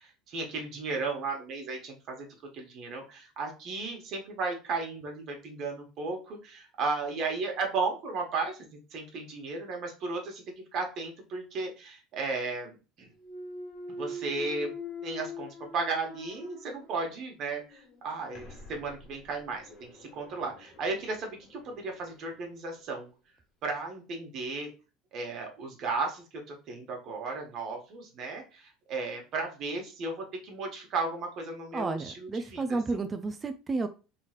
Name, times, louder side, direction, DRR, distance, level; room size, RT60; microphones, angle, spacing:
voice 1, 0.0-2.3 2.5-13.1 13.9-14.7 15.0-23.1 23.6-24.7 25.1-32.8, right 3 dB, 55° right, 2 dB, 1.1 m, -35 dB
Thump thud, 13.2-17.2 17.7-22.4, left 2 dB, 45° left, 1.6 m, -44 dB
voice 2, 31.7-33.9, right 3 dB, 25° right, 7 dB, 0.3 m, -31 dB
3.0 x 2.9 x 2.4 m, 0.32 s
supercardioid pair, 95°, 0 cm